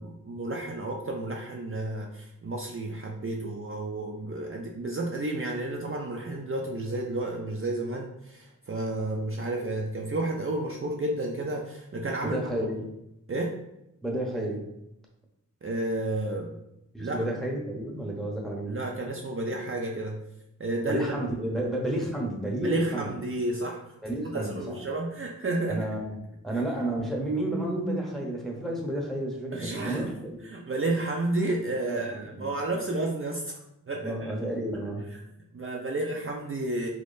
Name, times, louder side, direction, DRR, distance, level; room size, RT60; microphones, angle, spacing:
voice 1, 0.0-12.6 13.3-13.6 15.6-16.6 17.0-17.3 18.7-20.2 20.6-21.3 22.6-24.0 24.3-25.9 29.5-30.2 30.4-34.3 35.1-35.2 35.5-36.9, right 2 dB, 40° right, -1 dB, 0.5 m, -31 dB
voice 2, 12.2-12.9 14.0-14.7 16.9-18.8 20.9-23.2 24.0-24.8 25.7-26.2 26.4-30.5 31.8-32.5 34.0-35.1, right 1 dB, ahead, -1 dB, 0.9 m, -31 dB
3.6 x 3.0 x 2.6 m, 0.86 s
wide cardioid pair, 50°, 33 cm